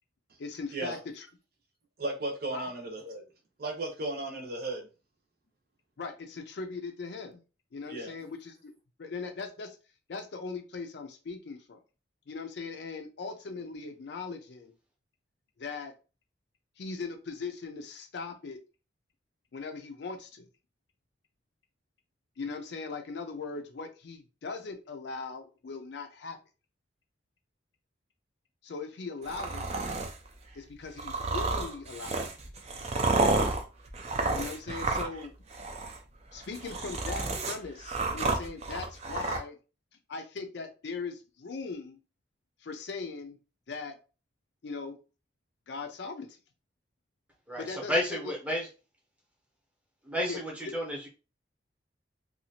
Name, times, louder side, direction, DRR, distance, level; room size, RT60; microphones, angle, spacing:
voice 1, 0.4-1.3 2.5-2.7 6.0-7.4 7.7-8.7 9.0-9.8 10.1-11.8 12.3-14.7 15.6-15.9 16.8-18.6 19.5-20.5 22.4-26.4 28.6-29.7 30.5-32.3 34.3-35.3 36.3-39.6 40.1-42.0 42.6-43.4 43.7-44.0 44.6-45.0 45.7-46.4 47.6-48.2 50.3-50.4, left 4 dB, 60° left, 0.4 m, -39 dB
voice 2, 2.0-3.2 3.6-4.8 7.9-8.1, right 2 dB, 55° right, 0.8 m, -35 dB
sound 1, 29.2-30.2 31.0-35.3 35.5-36.0 36.4-39.4, right 3 dB, 35° right, 0.4 m, -30 dB
voice 3, 47.5-48.7 50.0-51.1, equal, 5° right, 0.8 m, -31 dB
2.7 x 2.3 x 2.8 m
head